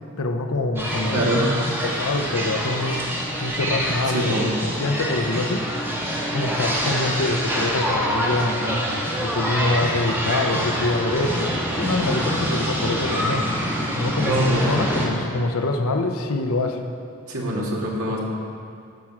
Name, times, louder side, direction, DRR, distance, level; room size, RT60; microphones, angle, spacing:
voice 1, 0.2-1.3 1.8-3.1 3.4-5.7 6.3-8.9 9.2-11.5 11.8-13.5 14.0-16.8, left 2 dB, 80° left, 5 dB, 0.8 m, -25 dB
sound 1, 0.8-15.1, equal, 10° right, 1.5 m, -26 dB
voice 2, 1.1-1.5 4.1-4.5 14.2-14.6 17.3-18.2, right 1 dB, 80° right, -3 dB, 1.8 m, -23 dB
13.0 x 6.0 x 4.9 m, 2.4 s
head